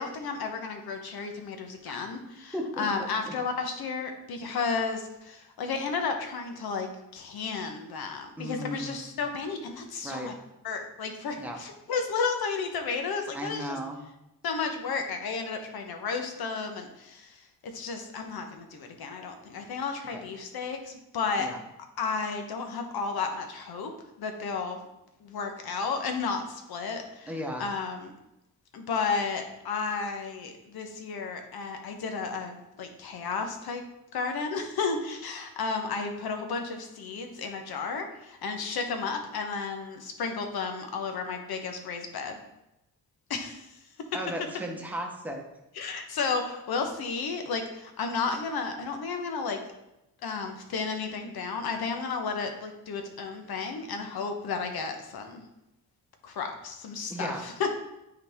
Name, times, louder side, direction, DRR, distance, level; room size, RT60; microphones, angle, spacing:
voice 1, 0.0-10.3 10.6-13.8 14.4-21.5 22.0-23.9 24.2-24.8 25.2-28.1 28.7-33.8 34.1-42.4 43.3-43.7 45.7-49.6 50.2-55.4 56.2-57.7, left 4 dB, 80° left, 5 dB, 1.1 m, -33 dB
voice 2, 2.5-2.9 3.2-3.3 8.4-9.1 10.0-10.3 11.4-11.6 13.3-14.0 20.1-20.2 21.4-21.6 27.3-27.7 44.1-45.4 57.1-57.4, equal, 5° right, 1 dB, 0.9 m, -35 dB
9.7 x 4.1 x 3.5 m, 0.90 s
wide cardioid pair, 165°, 36 cm